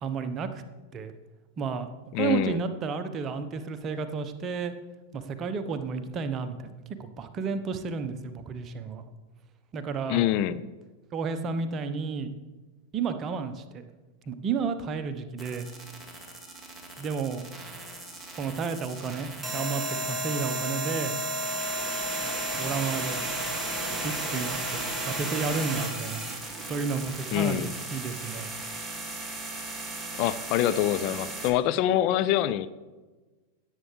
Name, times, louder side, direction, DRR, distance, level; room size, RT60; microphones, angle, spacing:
voice 1, 0.0-0.6 0.9-1.1 1.6-1.9 2.1-4.7 5.1-9.0 9.7-10.3 11.1-12.3 12.9-13.9 14.3-15.7 17.0-17.5 18.4-21.2 22.5-23.3 23.9-26.3 26.7-28.5, right 5 dB, 30° right, 9 dB, 1.0 m, -32 dB
voice 2, 2.1-2.6 10.1-10.6 27.3-27.7 30.2-32.7, left 12 dB, 45° left, 13 dB, 0.4 m, -25 dB
sound 1, 15.4-31.5, right 1 dB, 5° right, 2.2 m, -34 dB
17.5 x 8.3 x 3.3 m, 1.2 s
figure-of-eight pair, 90°, 0 cm